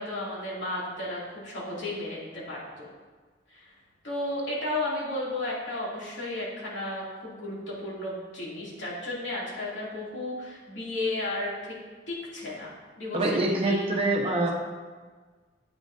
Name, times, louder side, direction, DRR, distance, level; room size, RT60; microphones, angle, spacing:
voice 1, 0.0-2.9 3.5-3.7 4.0-11.8 12.1-13.4 13.6-13.8 14.2-14.3, left 1 dB, 75° left, -6 dB, 2.7 m, -33 dB
voice 2, 13.1-14.5, right 2 dB, 30° right, -1 dB, 1.0 m, -25 dB
8.8 x 8.8 x 2.7 m, 1.4 s
head